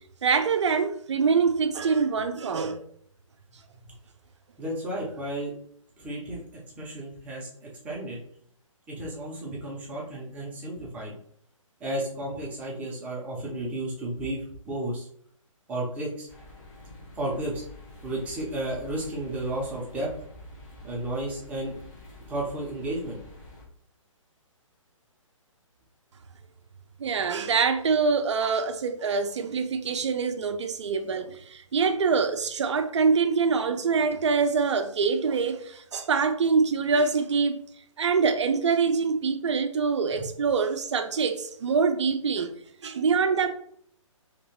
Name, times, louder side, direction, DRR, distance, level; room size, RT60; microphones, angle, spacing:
voice 1, 0.2-2.8 27.0-37.6 38.0-42.5 42.8-43.6, right 5 dB, 55° right, 0.5 m, -25 dB
voice 2, 4.6-5.5 6.0-6.4 6.8-8.2 8.9-11.1 11.8-15.1 15.7-16.3 17.1-17.6 18.0-20.1 20.8-21.7 22.3-23.2 40.1-40.3, right 1 dB, 10° right, 0.6 m, -33 dB
sound 1, 16.3-23.7, left 1 dB, 35° left, 0.9 m, -47 dB
2.9 x 2.9 x 2.9 m
figure-of-eight pair, 135°, 17 cm